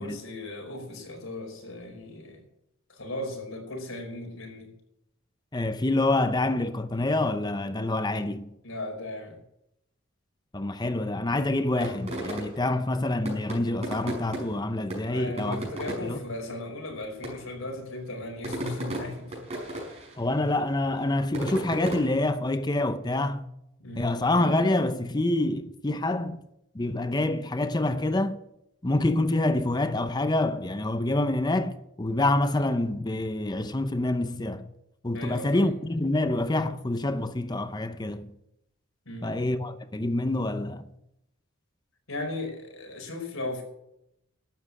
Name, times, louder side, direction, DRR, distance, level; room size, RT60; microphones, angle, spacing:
voice 1, 0.0-2.4 2.9-4.7 8.6-9.4 15.0-19.4 23.8-24.2 35.1-35.7 39.1-39.4 42.1-43.6, left 2 dB, 75° left, 5.1 m, -37 dB
voice 2, 5.5-8.5 10.5-16.2 20.2-23.5 24.0-26.4 26.7-28.4 28.8-34.6 35.0-38.3 39.2-40.9, left 2 dB, 20° left, 0.7 m, -27 dB
sound 1, 11.8-12.8 13.2-14.6 14.9-16.2 16.9-17.0 17.2-17.6 18.2-20.2 20.5-22.2, right 1 dB, 30° right, 5.7 m, -35 dB
12.5 x 8.7 x 9.8 m
head